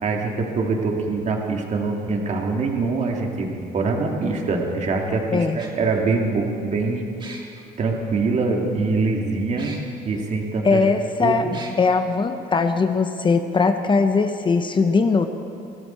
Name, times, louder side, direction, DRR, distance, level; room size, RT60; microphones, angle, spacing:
voice 1, 0.0-7.1 7.8-9.7 10.1-10.8 11.2-11.5, right 3 dB, 45° right, 1 dB, 2.2 m, -24 dB
sound 1, 3.0-3.1 4.5-4.6 5.6-5.7 7.2-7.6 9.6-9.8 10.4-10.5 11.5-11.7, right 3 dB, 30° right, 2.5 m, -39 dB
voice 2, 10.6-11.5 11.8-15.3, left 4 dB, 30° left, 7 dB, 0.9 m, -20 dB
22.5 x 14.0 x 4.5 m, 2.5 s
cardioid pair, 110°, 17 cm